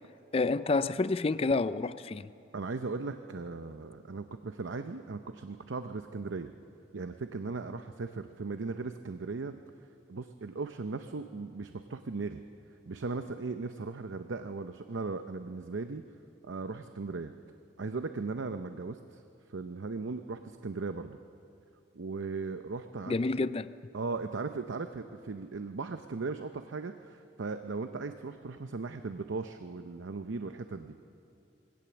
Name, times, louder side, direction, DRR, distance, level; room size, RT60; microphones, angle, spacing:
voice 1, 0.3-2.3 23.1-23.7, left 3 dB, 30° left, 15 dB, 0.4 m, -29 dB
voice 2, 2.5-6.5 6.9-9.5 10.1-12.4 12.9-16.0 16.4-17.3 17.8-19.2 19.5-21.2 21.9-23.1 23.9-31.0, right 3 dB, 80° right, 8 dB, 0.6 m, -37 dB
21.5 x 17.0 x 7.0 m, 2.7 s
head